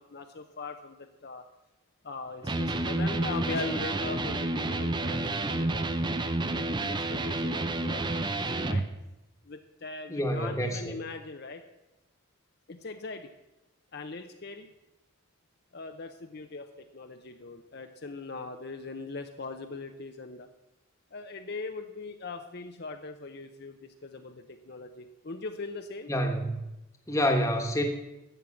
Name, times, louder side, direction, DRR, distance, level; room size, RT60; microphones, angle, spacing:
voice 1, 0.0-1.4 2.0-5.9 6.4-8.8 9.5-11.6 12.7-13.3 13.9-14.7 15.7-20.5 21.1-26.1, left 3 dB, 50° left, 6 dB, 0.7 m, -40 dB
Electric guitar, 2.4-8.9, right 2 dB, 20° right, 0.6 m, -30 dB
voice 2, 10.1-11.0 26.1-26.6 27.1-27.8, equal, 15° left, 3 dB, 1.3 m, -27 dB
12.5 x 7.8 x 7.1 m, 0.97 s
head